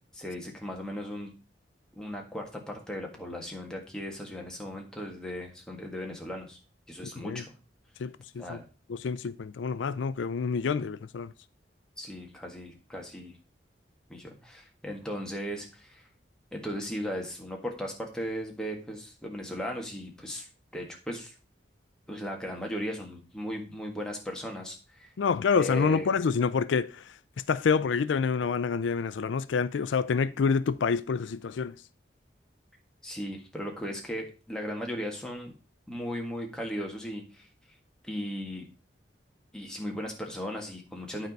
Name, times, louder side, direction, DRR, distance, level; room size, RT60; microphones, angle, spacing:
voice 1, 0.1-1.3 2.0-6.6 6.9-7.5 8.4-8.7 12.0-13.3 14.1-16.0 16.5-20.5 20.7-21.3 22.1-25.1 25.6-26.1 33.0-35.5 35.9-37.5 38.0-38.7 39.5-41.3, equal, 5° left, 1.6 m, -37 dB
voice 2, 8.0-8.6 8.9-11.3 25.2-27.2 27.5-31.7, left 5 dB, 80° left, 0.4 m, -27 dB
9.2 x 4.6 x 5.3 m
head